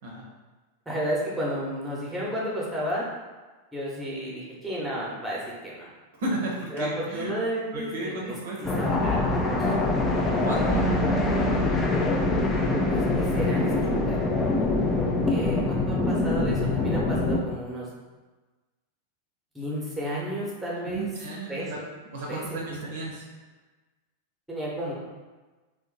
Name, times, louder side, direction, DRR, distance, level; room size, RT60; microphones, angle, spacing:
voice 1, 0.9-3.1 3.7-5.9 6.7-9.3 9.6-9.8 12.9-13.7 14.1-14.2 15.3-17.9 19.5-21.1 21.5-21.7 22.3-22.4 22.7-23.0 24.5-24.9, equal, 5° right, -5 dB, 0.9 m, -32 dB
voice 2, 6.2-7.3 7.7-8.6 10.2-11.0 20.8-21.8 22.1-23.2, right 2 dB, 55° right, -3 dB, 0.7 m, -33 dB
sound 1, 8.6-17.4, left 2 dB, 15° left, 0.4 m, -24 dB
2.9 x 2.2 x 3.7 m, 1.3 s
figure-of-eight pair, 90°, 0 cm